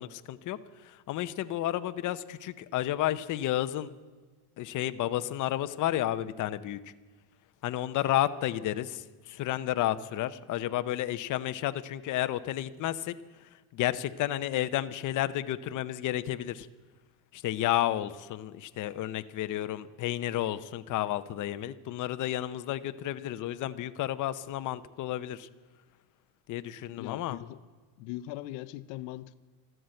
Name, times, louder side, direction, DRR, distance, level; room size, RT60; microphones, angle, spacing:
voice 1, 0.0-3.9 4.6-6.8 7.6-13.1 13.7-16.7 17.3-25.5 26.5-27.4, left 13 dB, 45° left, 12 dB, 0.7 m, -31 dB
voice 2, 27.0-27.6 28.0-29.4, left 15 dB, 80° left, 16 dB, 0.7 m, -40 dB
13.5 x 12.5 x 7.7 m, 1.3 s
cardioid pair, 135°, 45 cm